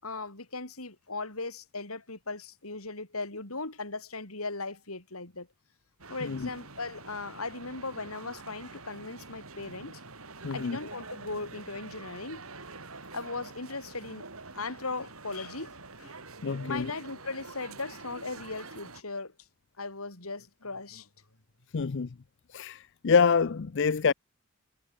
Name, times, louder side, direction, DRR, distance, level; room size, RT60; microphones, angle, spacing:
voice 1, 0.0-5.5 6.1-10.0 10.5-12.4 13.1-14.2 14.5-16.1 16.6-19.3 19.8-21.1, left 3 dB, 85° left, 4.9 m, -38 dB
sound 1, 6.0-19.0, right 3 dB, 80° right, 5.9 m, -46 dB
voice 2, 10.4-10.8 16.4-16.9 21.7-22.1 22.5-24.1, left 5 dB, 55° left, 0.5 m, -26 dB
head